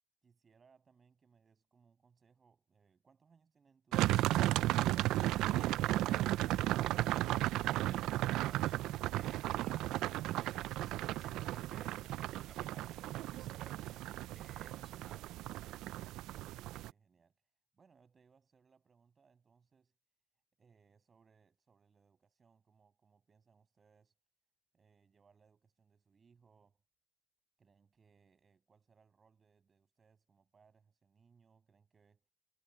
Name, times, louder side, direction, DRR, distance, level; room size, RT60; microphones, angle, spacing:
voice 1, 0.2-5.2 16.3-20.0 20.6-24.2 24.7-26.8 27.6-32.3, right 5 dB, 25° right, 7.8 m, -70 dB
sound 1, 3.9-16.9, right 16 dB, 60° right, 0.6 m, -34 dB
voice 2, 6.0-15.3, right 1 dB, 5° right, 6.0 m, -62 dB
supercardioid pair, 105°, 0 cm